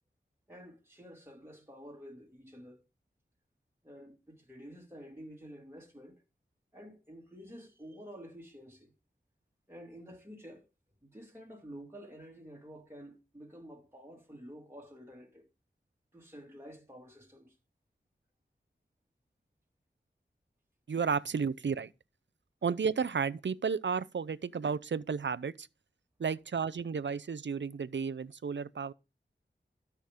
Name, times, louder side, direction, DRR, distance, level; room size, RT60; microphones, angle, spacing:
voice 1, 0.5-2.8 3.8-6.2 6.7-8.9 9.7-10.7 11.0-15.5 16.1-17.6, equal, 10° right, 2.4 m, -50 dB
voice 2, 20.9-21.9 22.6-25.7 26.2-28.9, right 6 dB, 70° right, 0.5 m, -32 dB
13.0 x 5.9 x 3.7 m
wide cardioid pair, 45°, 19 cm